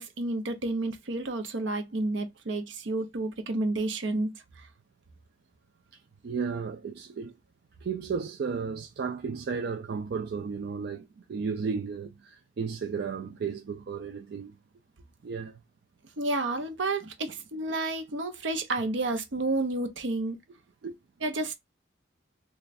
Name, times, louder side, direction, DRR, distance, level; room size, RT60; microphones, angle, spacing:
voice 1, 0.0-4.3 4.6-4.7 16.2-20.4 21.2-21.5, right 2 dB, 75° right, 0.7 m, -30 dB
voice 2, 5.9-7.3 7.8-14.6 15.2-15.6 20.8-21.0, right 5 dB, 60° right, 0.4 m, -34 dB
3.2 x 2.4 x 4.0 m
head